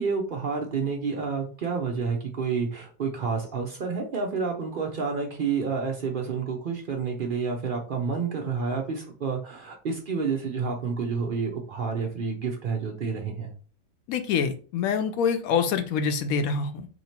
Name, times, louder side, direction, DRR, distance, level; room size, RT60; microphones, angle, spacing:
voice 1, 0.0-13.5, right 5 dB, 60° right, 2 dB, 0.5 m, -29 dB
voice 2, 14.1-16.9, left 6 dB, 70° left, 8 dB, 1.0 m, -26 dB
2.9 x 2.8 x 4.2 m, 0.39 s
omnidirectional pair, 1.6 m